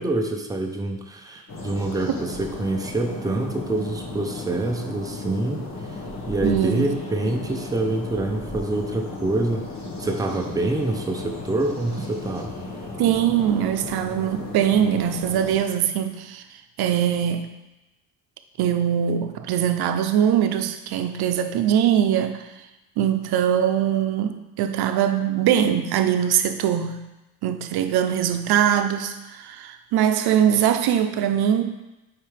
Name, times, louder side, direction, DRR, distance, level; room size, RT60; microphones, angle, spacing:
voice 1, 0.0-5.7 6.3-9.6 10.0-12.6, right 2 dB, 10° right, 2 dB, 0.5 m, -26 dB
sound 1, 1.5-15.6, left 2 dB, 45° left, 1.4 m, -35 dB
voice 2, 6.4-6.9 13.0-16.4 16.8-17.5 18.6-22.5 23.0-27.0 27.4-31.6, right 9 dB, 80° right, 8 dB, 0.6 m, -22 dB
8.6 x 4.6 x 3.3 m, 1.0 s
cardioid pair, 175°, 37 cm